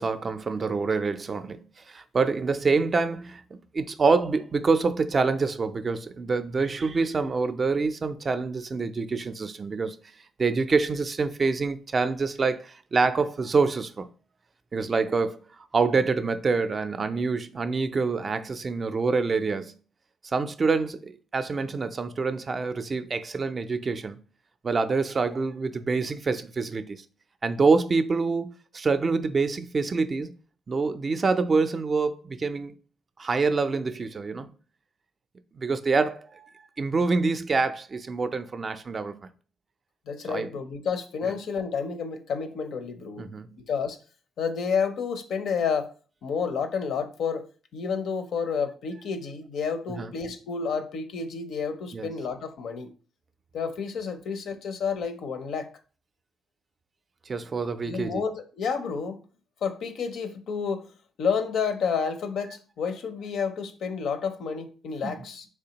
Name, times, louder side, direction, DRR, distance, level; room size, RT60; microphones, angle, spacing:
voice 1, 0.0-10.0 10.4-14.1 14.7-15.4 15.7-19.7 20.3-24.2 24.6-27.0 27.4-30.3 30.7-32.7 33.2-34.5 35.5-36.5 36.8-39.1 40.3-40.5 41.2-41.3 43.2-43.5 49.9-50.1 51.9-52.1 57.3-58.2 65.0-65.2, right 4 dB, 35° right, 0.4 m, -26 dB
voice 2, 40.1-43.3 43.6-44.0 44.4-45.9 46.2-47.5 47.7-52.9 53.5-55.7 57.8-59.2 59.6-60.9 61.2-65.5, left 6 dB, 70° left, 0.5 m, -30 dB
3.5 x 3.3 x 2.8 m
cardioid pair, 90°, 0 cm